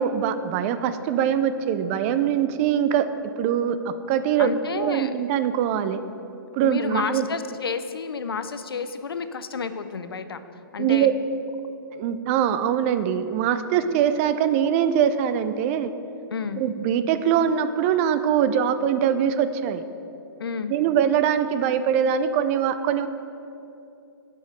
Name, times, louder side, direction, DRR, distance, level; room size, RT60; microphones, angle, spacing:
voice 1, 0.0-3.1 3.4-6.0 6.5-7.2 10.8-11.1 11.9-15.9 16.6-19.8 20.7-23.1, right 9 dB, 35° right, 11 dB, 0.4 m, -23 dB
voice 2, 4.4-5.1 6.6-10.4 10.7-11.1 16.3-16.6 20.4-20.7, left 5 dB, 90° left, 11 dB, 0.4 m, -30 dB
5.5 x 5.2 x 6.1 m, 2.7 s
hypercardioid pair, 125°, 12 cm